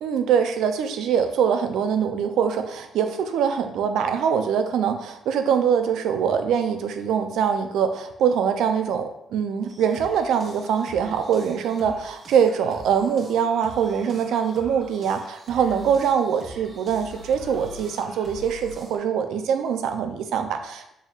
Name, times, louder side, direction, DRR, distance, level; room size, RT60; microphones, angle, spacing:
voice 1, 0.0-20.9, right 7 dB, 80° right, 7 dB, 0.4 m, -23 dB
sound 1, 9.7-19.0, right 1 dB, 50° right, 0.8 m, -44 dB
4.3 x 3.5 x 2.4 m, 0.81 s
cardioid pair, 90°, 0 cm